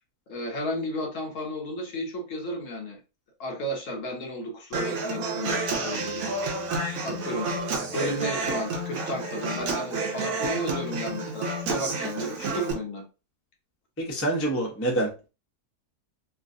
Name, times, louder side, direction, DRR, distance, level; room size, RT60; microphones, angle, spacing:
voice 1, 0.3-3.0 3.4-6.3 7.0-13.0, left 1 dB, 60° left, 1 dB, 1.0 m, -33 dB
Human voice / Acoustic guitar, 4.7-12.7, right 3 dB, 65° right, 1.1 m, -30 dB
voice 2, 14.0-15.3, right 1 dB, 20° left, -1 dB, 0.4 m, -27 dB
3.0 x 2.5 x 2.5 m, 0.31 s
omnidirectional pair, 1.7 m